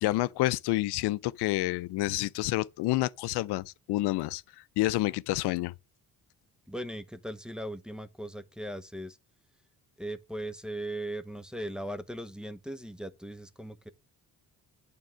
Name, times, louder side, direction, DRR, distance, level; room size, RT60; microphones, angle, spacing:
voice 1, 0.0-5.7, left 17 dB, 85° left, 0.5 m, -29 dB
voice 2, 6.7-9.2 10.0-13.9, right 1 dB, ahead, 0.8 m, -38 dB
9.1 x 3.6 x 6.2 m
cardioid pair, 80°, 38 cm